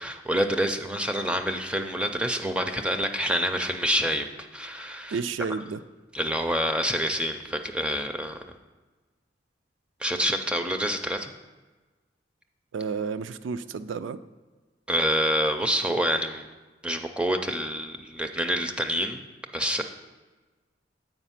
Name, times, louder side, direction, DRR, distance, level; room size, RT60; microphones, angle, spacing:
voice 1, 0.0-4.3 4.5-5.2 6.1-8.4 10.0-11.3 14.9-16.5 16.8-19.3 19.5-19.8, equal, 5° right, 6 dB, 0.4 m, -27 dB
voice 2, 5.1-5.8 12.7-14.2, right 5 dB, 85° right, 11 dB, 0.4 m, -31 dB
8.0 x 5.0 x 5.7 m, 1.3 s
head